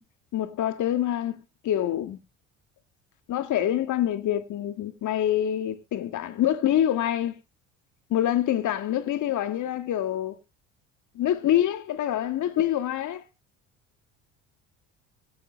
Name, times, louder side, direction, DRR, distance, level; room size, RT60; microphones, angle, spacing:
voice 1, 0.3-2.2 3.3-7.4 8.1-10.4 11.2-13.2, left 11 dB, 55° left, 2.2 m, -26 dB
24.5 x 8.6 x 2.2 m
hypercardioid pair, 70°, 36 cm